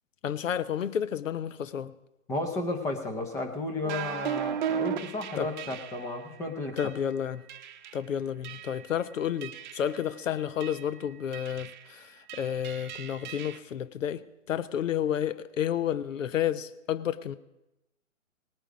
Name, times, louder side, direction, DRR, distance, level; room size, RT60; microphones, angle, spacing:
voice 1, 0.2-1.9 5.4-5.5 6.8-7.4 7.9-17.4, left 9 dB, 70° left, 15 dB, 0.8 m, -31 dB
voice 2, 2.3-6.8, left 2 dB, 10° left, 5 dB, 0.6 m, -33 dB
sound 1, 3.8-6.1 6.8-7.0 7.5-8.0 8.4-8.9 9.4-10.0 10.6-10.9 11.3-11.9 12.3-13.6, right 8 dB, 35° right, 0.9 m, -36 dB
19.0 x 9.0 x 5.1 m, 0.93 s
hypercardioid pair, 145°, 40 cm